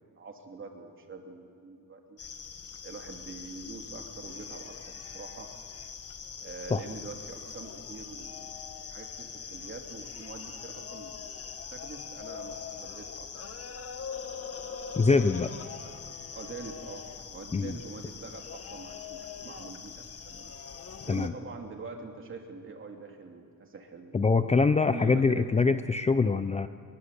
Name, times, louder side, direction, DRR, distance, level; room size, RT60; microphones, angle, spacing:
voice 1, 0.0-2.2 2.8-5.5 6.4-8.5 8.9-11.1 11.7-13.3 13.7-13.8 15.8-20.5 21.0-24.3 24.9-25.5, right 4 dB, 35° right, 3 dB, 2.8 m, -44 dB
sound 1, 2.2-21.3, left 6 dB, 45° left, 1.5 m, -42 dB
voice 2, 15.0-15.5 17.5-17.8 21.1-21.3 24.1-26.7, left 4 dB, 20° left, 10 dB, 0.6 m, -24 dB
24.0 x 22.0 x 8.4 m, 2.5 s
wide cardioid pair, 155°, 34 cm